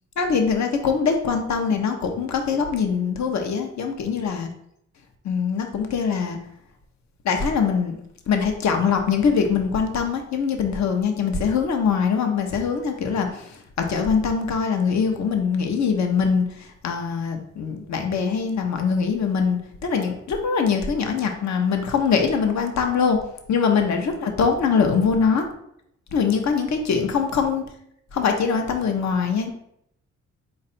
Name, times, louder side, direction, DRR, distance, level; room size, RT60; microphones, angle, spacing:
voice 1, 0.2-4.5 5.2-6.4 7.2-8.0 8.3-23.2 23.5-25.4 26.1-27.6 28.1-29.5, left 6 dB, 60° left, 4 dB, 0.8 m, -23 dB
4.3 x 2.6 x 4.1 m, 0.73 s
supercardioid pair, 65°, 32 cm